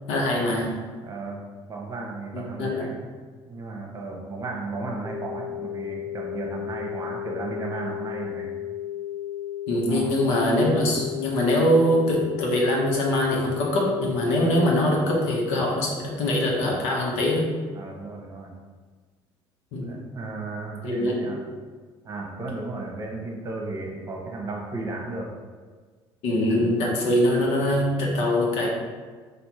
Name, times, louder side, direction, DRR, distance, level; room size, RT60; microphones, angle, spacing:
voice 1, 0.1-0.7 2.3-2.8 9.7-17.5 19.7-20.0 20.8-21.2 26.2-28.7, left 1 dB, 85° left, -2 dB, 1.1 m, -23 dB
voice 2, 1.0-1.4 1.7-3.0 3.5-8.5 9.9-10.1 17.7-18.5 19.8-21.4 22.0-25.3, right 3 dB, 35° right, -1 dB, 0.9 m, -34 dB
sound 1, 5.0-15.1, left 11 dB, 40° left, 1.3 m, -34 dB
4.2 x 2.6 x 4.6 m, 1.5 s
cardioid pair, 110°, 10 cm